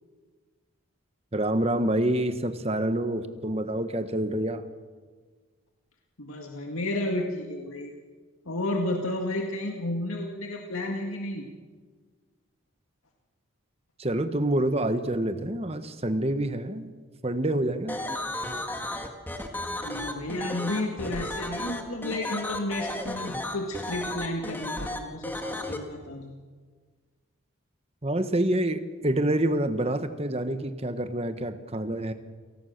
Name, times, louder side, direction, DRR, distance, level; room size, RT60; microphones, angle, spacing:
voice 1, 1.3-4.6 14.0-16.9 17.2-18.0 28.0-32.1, right 1 dB, 30° right, 10 dB, 1.3 m, -27 dB
voice 2, 6.2-7.9 8.5-11.5 19.5-26.3, left 1 dB, 85° left, 1 dB, 2.0 m, -32 dB
sound 1, 17.9-25.8, left 1 dB, 10° left, 1.9 m, -33 dB
29.0 x 19.0 x 6.6 m, 1.5 s
head